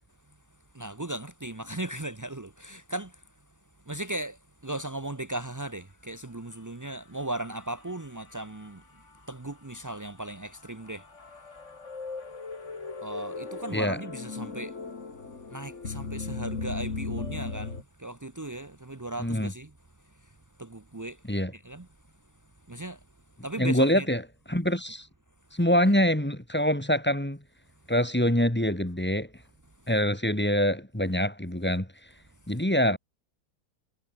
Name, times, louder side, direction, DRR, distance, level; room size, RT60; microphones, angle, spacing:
voice 1, 0.7-3.2 3.9-8.8 9.3-11.1 13.0-14.7 15.5-19.7 20.6-21.2 21.5-21.9 22.7-23.0 23.4-24.1 25.9-26.0, right 1 dB, 20° right, 0.5 m, -37 dB
sound 1, 7.2-8.7 9.1-9.2 10.3-17.8, left 4 dB, 35° left, 2.6 m, -37 dB
voice 2, 19.2-19.5 21.3-21.5 23.6-25.1 25.5-27.4 27.9-29.3 29.9-31.9 32.5-33.0, equal, 5° left, 2.0 m, -25 dB
omnidirectional pair, 2.1 m